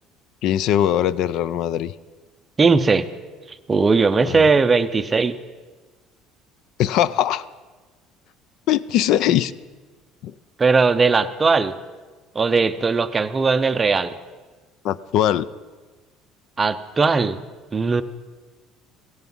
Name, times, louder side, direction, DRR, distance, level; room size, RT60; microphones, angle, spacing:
voice 1, 0.4-1.9 4.2-4.5 6.8-7.4 8.7-9.5 10.2-10.3 14.8-15.5, left 11 dB, 55° left, 18 dB, 0.4 m, -21 dB
voice 2, 2.6-3.1 3.5-5.4 10.6-11.8 12.3-14.2 16.6-17.4 17.7-18.0, right 4 dB, 15° right, 11 dB, 0.5 m, -18 dB
16.5 x 16.0 x 5.4 m, 1.3 s
cardioid pair, 175°, 0 cm